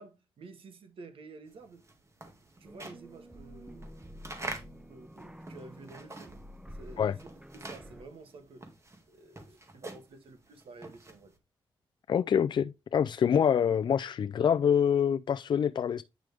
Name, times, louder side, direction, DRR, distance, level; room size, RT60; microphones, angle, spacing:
voice 1, 0.0-1.8 2.6-6.4 6.7-7.2 7.5-8.7 9.1-11.3, right 3 dB, 75° right, 1.6 m, -51 dB
sound 1, 1.6-6.6 6.9-11.3, right 2 dB, 30° right, 2.1 m, -45 dB
sound 2, 2.6-8.1, equal, 10° right, 0.8 m, -49 dB
voice 2, 12.1-16.0, left 8 dB, 55° left, 0.4 m, -26 dB
9.1 x 6.2 x 3.5 m
cardioid pair, 95°, 9 cm